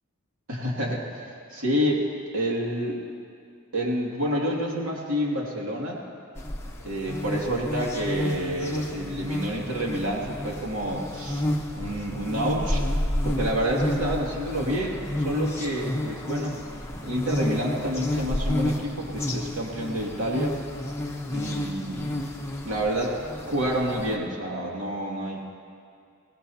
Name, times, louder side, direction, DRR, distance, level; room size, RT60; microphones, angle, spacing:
voice 1, 0.5-3.0 3.7-6.0 6.8-11.4 11.7-12.8 13.2-16.6 17.0-20.6 21.3-22.2 22.6-23.2 23.5-25.4, equal, 75° right, -2 dB, 2.4 m, -28 dB
sound 1, 6.3-24.2, left 1 dB, 10° left, 1.0 m, -30 dB
21.5 x 17.5 x 2.8 m, 2.3 s
head